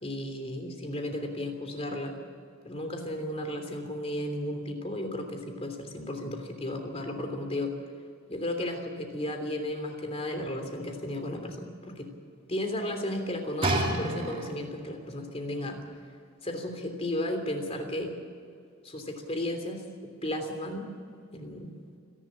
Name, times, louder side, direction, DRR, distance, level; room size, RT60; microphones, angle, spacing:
voice 1, 0.0-2.2 2.6-7.7 8.3-12.1 12.5-15.8 16.4-18.2 18.8-19.8 20.2-20.9 21.3-21.7, left 1 dB, 30° left, 5 dB, 3.2 m, -34 dB
sound 1, 13.6-14.9 15.7-15.8, right 1 dB, 25° right, 2.2 m, -29 dB
28.0 x 11.5 x 8.6 m, 2.4 s
head